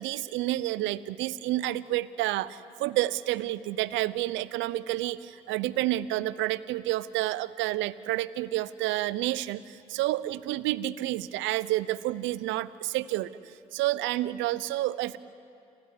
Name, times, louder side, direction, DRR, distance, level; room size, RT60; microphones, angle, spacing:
voice 1, 0.0-13.3 13.7-15.2, right 15 dB, 75° right, 18 dB, 0.8 m, -29 dB
29.5 x 20.5 x 9.7 m, 2.6 s
hypercardioid pair, 40°, 20 cm